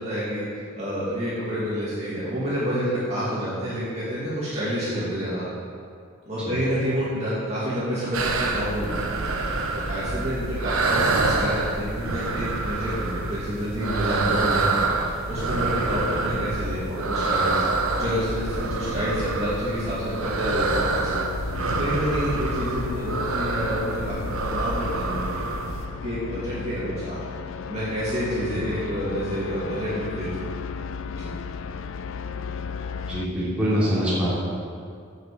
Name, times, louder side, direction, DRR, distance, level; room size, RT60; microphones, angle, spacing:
voice 1, 0.0-5.5 6.3-8.9 9.2-17.6 17.9-21.5 21.8-25.5 26.0-27.2 27.7-30.5 31.1-31.3, equal, 30° right, -10 dB, 2.3 m, -29 dB
sound 1, 8.1-25.9, right 3 dB, 85° right, 0.9 m, -27 dB
sound 2, 15.5-33.3, left 5 dB, 70° left, 0.4 m, -35 dB
voice 2, 33.1-34.3, equal, 5° right, -10 dB, 2.9 m, -24 dB
7.9 x 7.3 x 7.3 m, 2.3 s
head